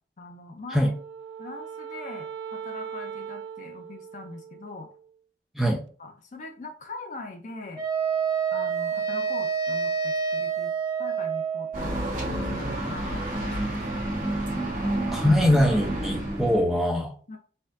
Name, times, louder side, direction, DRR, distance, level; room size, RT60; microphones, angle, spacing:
voice 1, 0.2-0.9 1.4-4.9 6.0-7.8 8.5-10.7 11.0-11.7 11.9-13.8 17.3-17.4, left 3 dB, 40° left, 4 dB, 0.5 m, -42 dB
Wind instrument woodwind instrument, 0.7-5.2, right 7 dB, 85° right, 0.3 m, -40 dB
Wind instrument woodwind instrument 2, 7.7-11.9, right 6 dB, 30° right, 1.6 m, -27 dB
sound 1, 11.7-16.7, right 1 dB, 45° right, 1.1 m, -29 dB
voice 2, 15.1-17.1, left 1 dB, ahead, -1 dB, 0.7 m, -22 dB
4.2 x 2.5 x 2.6 m, 0.41 s
head